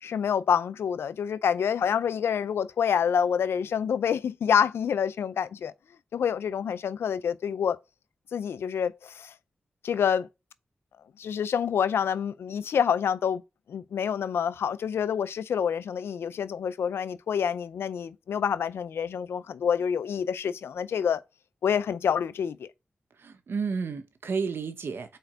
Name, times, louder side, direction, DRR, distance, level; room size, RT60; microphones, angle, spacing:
voice 1, 0.0-5.7 6.1-7.8 8.3-9.3 9.8-10.3 11.2-13.4 13.7-21.2 21.6-22.7, left 7 dB, 90° left, 0.4 m, -27 dB
voice 2, 23.2-25.2, right 5 dB, 70° right, 0.9 m, -31 dB
4.5 x 4.4 x 4.9 m
cardioid pair, 50°, 4 cm